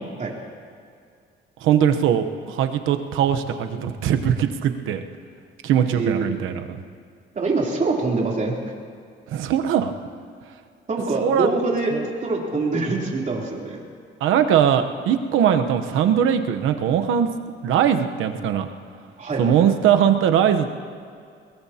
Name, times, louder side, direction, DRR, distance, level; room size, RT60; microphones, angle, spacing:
voice 1, 1.6-5.0 5.6-6.8 9.3-9.9 11.2-11.5 11.9-12.1 14.2-17.3 17.6-18.7 19.4-20.7, right 9 dB, 85° right, 7 dB, 1.0 m, -20 dB
voice 2, 5.9-6.3 7.3-8.5 10.9-11.9 12.2-13.8 19.2-19.7, right 3 dB, 40° right, -2 dB, 3.4 m, -24 dB
21.5 x 19.0 x 2.9 m, 2.3 s
cardioid pair, 90°, 20 cm